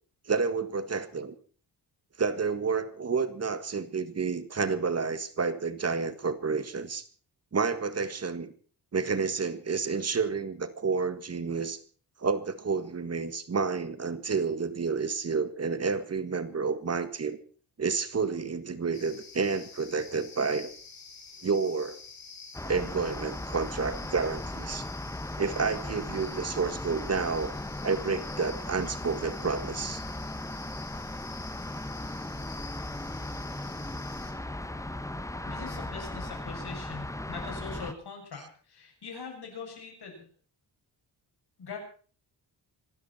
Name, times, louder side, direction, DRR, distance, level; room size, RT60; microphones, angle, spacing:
voice 1, 0.3-1.3 2.2-7.0 7.5-8.5 8.9-11.8 12.2-17.4 17.8-20.7 21.4-22.0 22.6-24.9 25.4-27.5 27.8-30.0, right 5 dB, 40° right, 12 dB, 1.6 m, -30 dB
sound 1, 18.9-34.3, left 5 dB, 55° left, 4.9 m, -48 dB
sound 2, 22.5-37.9, left 1 dB, 10° left, 0.9 m, -37 dB
voice 2, 35.5-40.3 41.6-41.8, left 5 dB, 70° left, 2 dB, 7.6 m, -42 dB
26.0 x 12.5 x 4.3 m, 0.41 s
wide cardioid pair, 145°, 40 cm